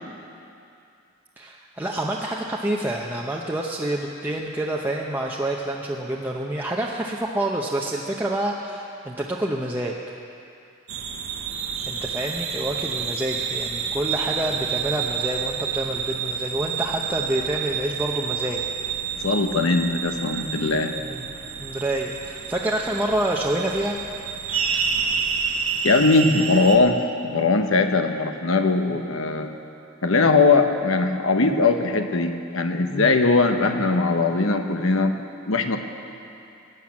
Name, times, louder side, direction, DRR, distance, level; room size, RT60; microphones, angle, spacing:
voice 1, 1.4-9.9 11.8-18.6 21.0-21.3 21.6-24.0 28.9-29.0 32.9-33.1, right 1 dB, 10° right, -2 dB, 0.8 m, -27 dB
sound 1, 10.9-26.8, right 6 dB, 75° right, 1.2 m, -29 dB
voice 2, 19.2-20.9 24.7-24.8 25.8-27.0 27.2-29.6 30.0-35.1 35.5-35.8, left 3 dB, 80° left, 6 dB, 1.1 m, -20 dB
18.0 x 9.3 x 7.3 m, 2.6 s
head